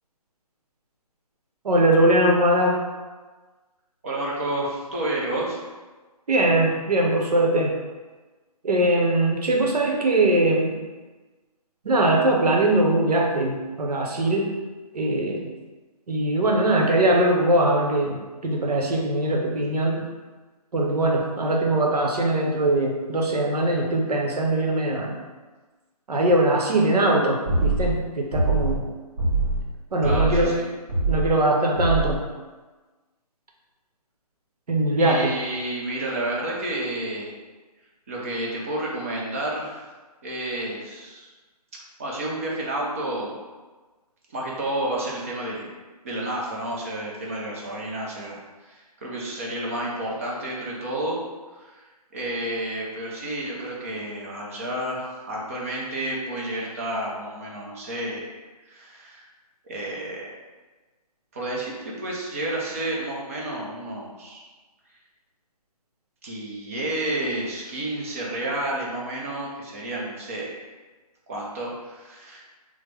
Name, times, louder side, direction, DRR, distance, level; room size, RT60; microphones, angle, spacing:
voice 1, 1.6-2.8 6.3-7.8 8.6-10.8 11.8-14.5 14.9-15.5 16.1-20.0 20.7-25.2 26.1-28.8 29.9-30.5 31.1-32.3 34.7-35.3, right 1 dB, 80° right, 0 dB, 0.8 m, -21 dB
voice 2, 4.0-5.6 30.0-30.7 35.0-37.3 38.1-39.8 40.2-41.3 42.0-43.3 44.3-45.8 46.0-48.4 48.6-51.2 51.6-51.8 52.1-58.3 58.7-59.3 59.7-60.3 61.3-64.4 66.2-70.5 71.3-72.4, right 1 dB, 20° right, -3 dB, 0.4 m, -30 dB
sound 1, 27.4-28.0 28.3-28.8 29.2-29.7 30.0-30.5 30.9-31.3 31.7-32.2, right 2 dB, 50° right, 1.2 m, -23 dB
3.4 x 2.0 x 3.2 m, 1.3 s
hypercardioid pair, 160°, 20 cm